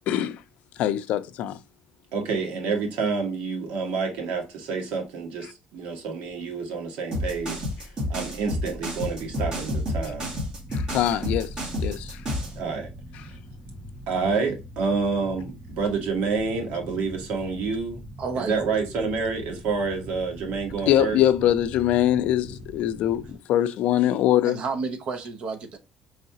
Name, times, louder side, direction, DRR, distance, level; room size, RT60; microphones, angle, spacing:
voice 1, 0.1-0.4 0.8-1.6 10.7-11.5 11.8-12.2 20.9-24.6, left 12 dB, 65° left, 0.4 m, -23 dB
voice 2, 2.1-7.6 8.1-10.3 12.6-12.9 14.1-18.0 18.4-21.2, right 4 dB, 85° right, 1.4 m, -28 dB
sound 1, 7.1-12.6, left 1 dB, 30° right, 1.5 m, -29 dB
sound 2, 9.2-23.4, equal, 10° right, 0.6 m, -43 dB
voice 3, 18.2-18.5 24.4-25.8, right 4 dB, 45° right, 0.7 m, -30 dB
4.7 x 3.2 x 2.8 m
cardioid pair, 175°, 3 cm